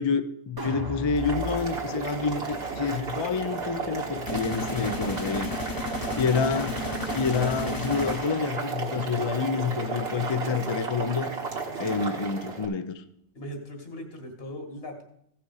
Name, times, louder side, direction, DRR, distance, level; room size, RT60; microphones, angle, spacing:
voice 1, 0.0-5.5 6.2-6.8 7.1-11.3 11.8-13.0, left 5 dB, 40° left, 10 dB, 0.4 m, -28 dB
sound 1, 0.6-6.8 7.2-7.3, left 2 dB, 20° right, 0.9 m, -41 dB
Boiling, 1.1-12.7, right 4 dB, 60° right, 1.6 m, -33 dB
sound 2, 4.3-9.0, left 3 dB, 20° left, 0.8 m, -34 dB
voice 2, 11.8-12.1 13.3-15.0, equal, 60° left, 3 dB, 2.0 m, -40 dB
15.5 x 5.9 x 4.8 m, 0.73 s
omnidirectional pair, 1.2 m